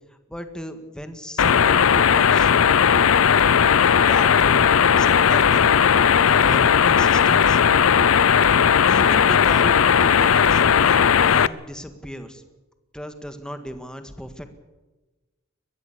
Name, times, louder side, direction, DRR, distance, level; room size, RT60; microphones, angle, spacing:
voice 1, 0.3-2.6 3.7-4.7 5.0-5.7 6.2-7.6 8.9-9.7 10.0-12.4 12.9-14.5, equal, 5° left, 8 dB, 1.7 m, -35 dB
sound 1, 1.4-11.5, left 7 dB, 90° left, 0.6 m, -16 dB
22.0 x 14.5 x 8.3 m, 1.2 s
head